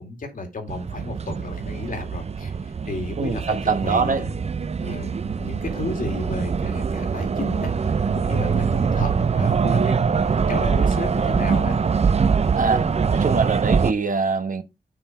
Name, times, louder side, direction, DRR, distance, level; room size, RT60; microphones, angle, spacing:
voice 1, 0.0-4.3 4.8-11.8, left 2 dB, 65° left, 2.6 m, -33 dB
sound 1, 0.7-13.9, right 5 dB, 45° right, 0.5 m, -23 dB
voice 2, 3.2-4.2 12.6-14.6, right 4 dB, 60° right, 1.2 m, -23 dB
6.9 x 5.8 x 4.9 m
wide cardioid pair, 110°, 16 cm